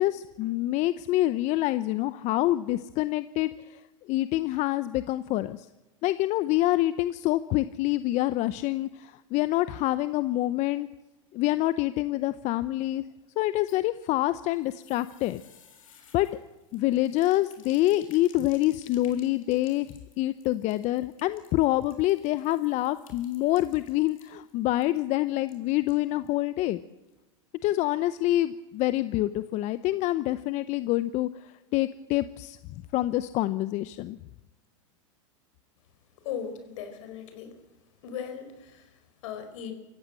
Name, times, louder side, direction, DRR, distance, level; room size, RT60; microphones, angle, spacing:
voice 1, 0.0-3.8 4.1-5.7 6.0-10.9 11.3-13.0 13.4-15.4 16.1-16.3 16.7-19.9 20.2-26.8 27.6-32.6 32.9-34.2, left 16 dB, 45° left, 14 dB, 0.7 m, -26 dB
sound 1, 13.4-26.4 26.7-26.8 27.1-27.2, left 7 dB, 85° left, 4.8 m, -58 dB
voice 2, 36.2-37.6 38.0-39.7, left 8 dB, 70° left, 7 dB, 4.7 m, -38 dB
25.5 x 15.5 x 7.6 m, 1.1 s
hypercardioid pair, 120°, 17 cm